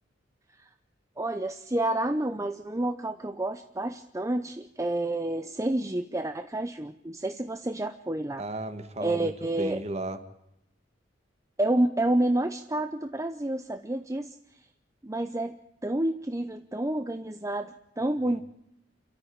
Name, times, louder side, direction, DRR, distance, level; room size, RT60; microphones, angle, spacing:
voice 1, 1.2-8.4 9.0-9.8 11.6-14.4 15.0-18.4, right 1 dB, 15° right, 8 dB, 0.7 m, -29 dB
voice 2, 8.4-10.2 18.3-18.4, right 1 dB, 35° right, 9 dB, 1.9 m, -35 dB
29.0 x 13.5 x 8.8 m, 0.84 s
head